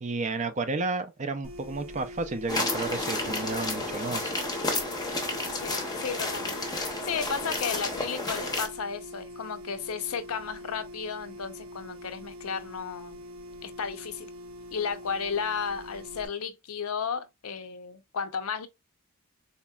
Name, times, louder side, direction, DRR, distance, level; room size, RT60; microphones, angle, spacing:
voice 1, 0.0-4.3, right 3 dB, 35° right, 0.4 m, -32 dB
sound 1, 1.4-16.3, left 1 dB, 80° right, 0.7 m, -44 dB
sound 2, 2.5-8.7, left 2 dB, 20° left, 0.7 m, -31 dB
voice 2, 5.5-13.2 13.6-14.3 14.7-18.7, left 6 dB, 80° left, 0.6 m, -34 dB
4.1 x 2.8 x 2.3 m
head